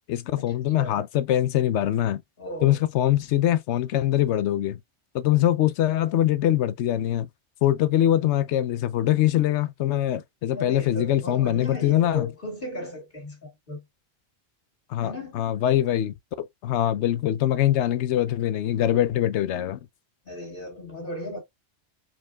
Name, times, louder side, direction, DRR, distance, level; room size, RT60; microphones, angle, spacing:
voice 1, 0.1-2.2 2.6-4.8 5.1-7.3 7.6-12.3 14.9-19.8, left 12 dB, 80° left, 0.9 m, -23 dB
voice 2, 2.4-2.8 10.5-13.8 15.0-15.5 20.2-21.4, left 1 dB, 50° left, 2.3 m, -36 dB
4.7 x 4.4 x 2.3 m
omnidirectional pair, 1.2 m